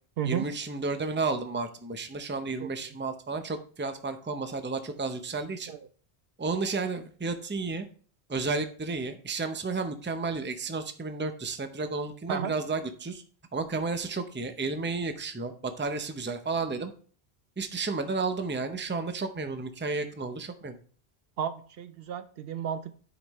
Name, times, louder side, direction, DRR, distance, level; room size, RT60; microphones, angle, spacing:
voice 1, 0.2-5.7 6.4-7.9 8.3-13.2 13.5-16.9 17.6-20.8, right 3 dB, 15° right, 8 dB, 0.6 m, -32 dB
voice 2, 21.4-22.9, right 9 dB, 65° right, 12 dB, 0.7 m, -32 dB
9.8 x 5.1 x 3.1 m, 0.43 s
omnidirectional pair, 1.1 m